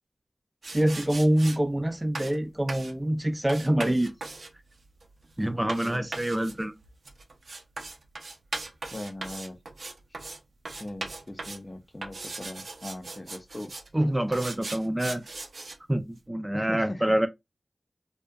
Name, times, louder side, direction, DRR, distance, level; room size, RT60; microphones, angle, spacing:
sound 1, 0.6-1.6 2.1-2.4 2.7-2.9 3.5-10.4 10.6-11.6 12.0-13.9 14.3-15.8, right 3 dB, 80° right, 0.4 m, -39 dB
voice 1, 0.7-4.1 5.4-6.7 13.9-15.2 15.9-17.3, right 1 dB, 20° right, 0.4 m, -26 dB
voice 2, 5.7-6.1 8.9-9.6 10.8-13.7 16.5-17.2, left 1 dB, 40° left, 0.5 m, -40 dB
2.6 x 2.2 x 2.2 m
cardioid pair, 40°, 0 cm